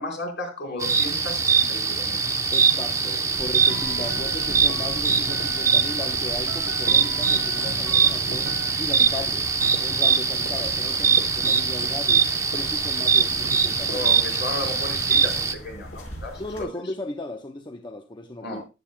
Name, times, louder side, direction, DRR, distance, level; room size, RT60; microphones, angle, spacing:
voice 1, 0.0-2.2 13.9-16.7 18.4-18.6, left 2 dB, 60° left, 4.6 m, -34 dB
sound 1, 0.8-15.5, right 6 dB, 15° right, 0.8 m, -22 dB
voice 2, 2.5-9.5 9.8-14.0 16.4-18.6, left 2 dB, 25° left, 0.8 m, -36 dB
sound 2, 3.3-16.6, equal, 85° left, 5.3 m, -42 dB
sound 3, 3.6-6.2 6.5-9.2 9.6-9.8 10.1-10.2 10.5-11.1 11.4-11.6 11.9-12.0 12.3-12.9 13.4-13.6 14.0-14.1 14.6-15.3, right 2 dB, 65° right, 0.8 m, -39 dB
14.5 x 10.0 x 2.2 m
head